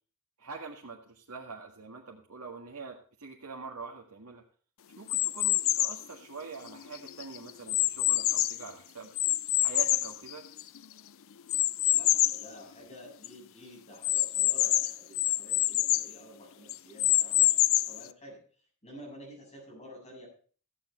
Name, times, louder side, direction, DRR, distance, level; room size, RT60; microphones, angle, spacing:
voice 1, 0.4-4.4 5.0-9.1 9.6-10.4, right 4 dB, 85° right, -1 dB, 1.9 m, -44 dB
sound 1, 5.1-6.0 6.7-8.7 9.2-10.8 11.5-12.5 12.9-13.0 13.2-13.3 14.0-16.1 16.7-18.0, left 16 dB, 65° left, 0.5 m, -26 dB
voice 2, 11.9-18.4 18.8-20.3, equal, 30° left, -2 dB, 7.6 m, -50 dB
15.0 x 8.9 x 4.4 m, 0.42 s
head